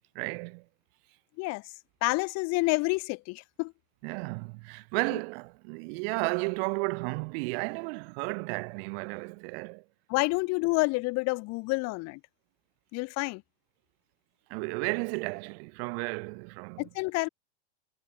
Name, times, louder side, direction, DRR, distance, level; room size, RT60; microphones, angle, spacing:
voice 1, 0.1-0.6 4.0-9.8 14.5-16.8, right 34 dB, 60° right, 2.2 m, -33 dB
voice 2, 2.0-3.7 10.1-12.2 12.9-13.4 16.8-17.3, left 26 dB, 45° left, 1.1 m, -28 dB
supercardioid pair, 120°, 35 cm